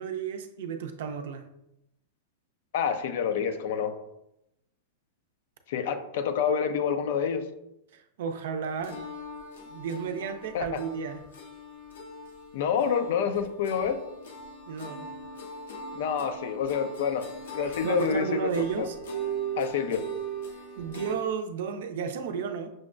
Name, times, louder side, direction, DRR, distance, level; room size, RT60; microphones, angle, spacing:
voice 1, 0.0-1.5 7.9-9.0 9.7-11.2 14.7-15.1 17.8-19.0 20.8-22.7, right 6 dB, 70° right, 7 dB, 0.5 m, -32 dB
voice 2, 2.7-3.9 5.7-7.4 10.5-10.7 12.5-14.0 15.9-17.3 17.5-18.5 18.8-18.9 19.6-20.0, left 7 dB, 65° left, 9 dB, 0.4 m, -27 dB
sound 1, 8.8-21.1, right 4 dB, 80° left, 0.8 m, -39 dB
6.2 x 2.1 x 2.5 m, 0.84 s
hypercardioid pair, 115°, 0 cm